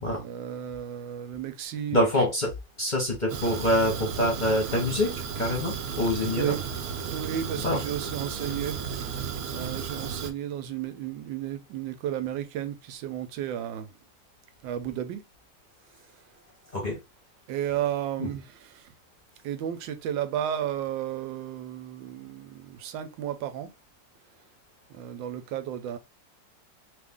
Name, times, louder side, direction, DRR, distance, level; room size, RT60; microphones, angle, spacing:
voice 1, 0.1-2.2 6.4-6.6 7.1-8.8 9.5-13.9 14.6-15.2 17.5-18.9 19.4-23.7 24.9-26.0, right 10 dB, 90° right, 1.3 m, -33 dB
voice 2, 1.9-2.5 2.8-5.1 5.3-6.5 7.6-7.8 16.7-17.0 18.2-18.3, left 1 dB, 35° left, 0.7 m, -25 dB
Fire, 3.3-10.3, right 6 dB, 70° right, 0.9 m, -34 dB
3.2 x 2.5 x 3.4 m
omnidirectional pair, 2.0 m